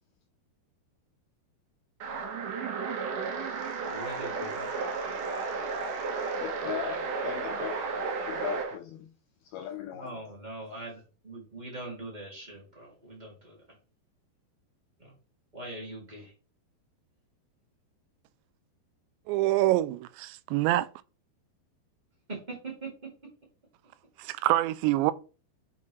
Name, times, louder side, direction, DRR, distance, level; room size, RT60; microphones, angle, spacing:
sound 1, 2.0-8.8, right 4 dB, 60° right, 2.4 m, -33 dB
voice 1, 3.9-4.7 9.9-10.9 11.2-13.6 15.0-15.1 15.5-16.3 22.3-22.9, right 2 dB, 20° right, 1.2 m, -41 dB
voice 2, 6.3-7.9 8.3-9.1 9.4-10.1, left 11 dB, 90° left, 2.1 m, -38 dB
voice 3, 19.3-20.9 24.2-25.1, right 16 dB, 90° right, 2.8 m, -25 dB
7.5 x 5.4 x 3.2 m
omnidirectional pair, 5.0 m